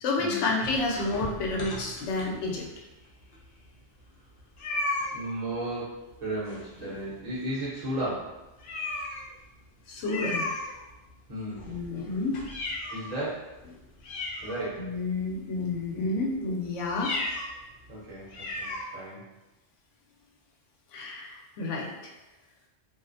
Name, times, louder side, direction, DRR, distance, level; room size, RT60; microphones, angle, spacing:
voice 1, 0.0-2.7 6.8-6.9 9.9-10.5 11.6-12.4 14.8-17.1 20.9-21.9, left 3 dB, 90° left, -1 dB, 0.9 m, -30 dB
sound 1, 0.6-2.7 3.3-3.4 3.6-3.7 4.6-5.2 6.5-7.0 7.3-7.5 7.9-8.0 8.6-9.3 10.0-11.1 11.5-13.2 13.6-13.7 14.0-15.0 15.6-15.9 16.9-17.5 17.9-18.0 18.3-18.8, left 2 dB, 60° left, 0.6 m, -35 dB
voice 2, 5.1-8.4 11.3-11.6 12.9-13.6 14.4-14.9 17.9-19.2, right 1 dB, 40° right, -7 dB, 0.8 m, -34 dB
2.4 x 2.0 x 2.5 m, 1.0 s
omnidirectional pair, 1.2 m